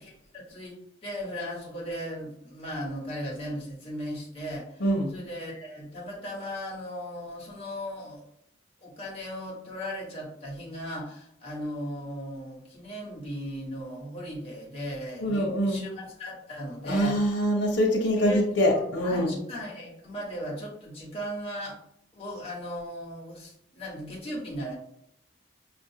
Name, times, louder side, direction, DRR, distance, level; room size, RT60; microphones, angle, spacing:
voice 1, 0.0-0.8 1.0-4.8 5.1-8.3 8.8-17.3 18.2-18.4 18.7-21.8 22.1-24.8, equal, 30° left, -4 dB, 1.1 m, -37 dB
voice 2, 4.8-5.1 15.2-15.8 16.8-19.3, equal, 80° left, -1 dB, 0.8 m, -24 dB
5.3 x 2.5 x 2.7 m, 0.73 s
head